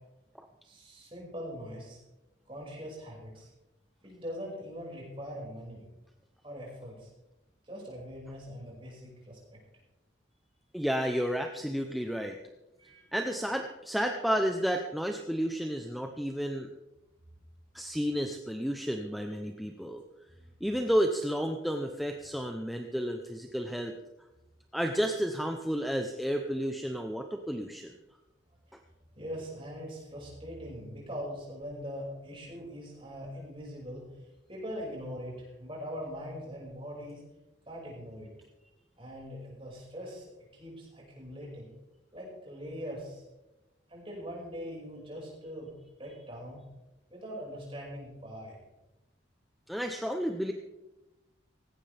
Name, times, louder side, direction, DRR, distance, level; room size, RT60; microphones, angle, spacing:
voice 1, 0.6-2.0 2.5-3.5 4.0-5.9 6.4-7.1 7.6-9.6 12.8-13.1 20.4-20.5 28.7-28.8 29.2-34.0 34.5-37.2 37.7-38.3 39.0-40.3 40.5-41.7 42.1-43.2 43.9-45.7 46.0-46.6 47.1-48.6, equal, 25° right, -3 dB, 5.7 m, -42 dB
voice 2, 10.7-12.4 13.1-16.7 17.7-20.0 20.6-23.9 24.7-27.9 49.7-50.5, equal, ahead, 3 dB, 0.7 m, -31 dB
18.0 x 16.5 x 3.5 m, 1.0 s
head